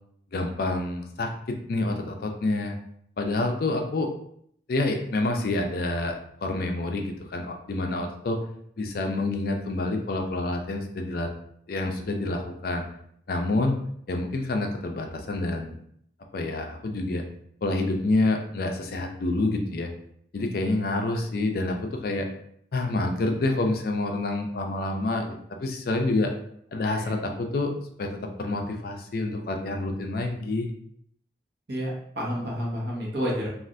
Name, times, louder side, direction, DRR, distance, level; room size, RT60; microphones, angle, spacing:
voice 1, 0.3-2.8 3.2-4.1 4.7-8.4 8.8-11.3 11.7-12.8 13.3-13.8 14.1-15.8 16.3-17.2 17.6-19.9 20.3-22.3 22.7-26.3 26.7-27.7 28.0-30.7, left 2 dB, 50° left, 3 dB, 0.4 m, -28 dB
voice 2, 31.7-33.5, equal, 60° right, -4 dB, 1.1 m, -30 dB
3.2 x 2.4 x 2.5 m, 0.68 s
head